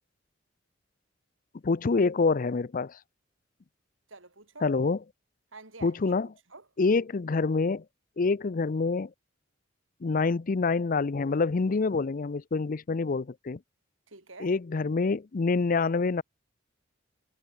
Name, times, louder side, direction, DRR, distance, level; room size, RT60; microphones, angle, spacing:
voice 1, 1.6-3.0 4.6-5.0 5.8-6.3 6.8-7.8 8.2-9.1 10.0-13.6 14.4-16.2, left 4 dB, 45° left, 0.5 m, -26 dB
voice 2, 4.1-4.7 5.5-6.6 14.1-14.5, right 3 dB, 85° right, 6.3 m, -48 dB
head